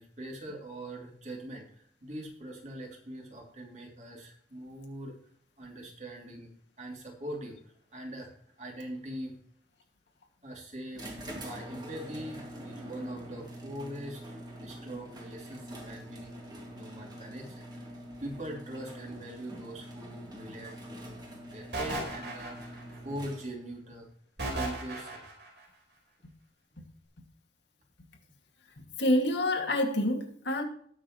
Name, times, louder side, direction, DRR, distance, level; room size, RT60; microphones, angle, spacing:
voice 1, 0.0-5.1 5.6-6.5 6.8-8.3 8.6-9.3 10.4-11.0 11.3-17.9 18.2-21.2 21.5-24.1 24.5-25.3, right 1 dB, 40° right, 3.0 m, -42 dB
sound 1, 10.9-23.7, equal, 25° right, 2.3 m, -45 dB
sound 2, 21.7-23.0 24.4-25.5, right 2 dB, 70° right, 4.2 m, -35 dB
voice 2, 29.0-30.6, left 1 dB, 85° left, 2.3 m, -27 dB
19.0 x 6.3 x 3.1 m
head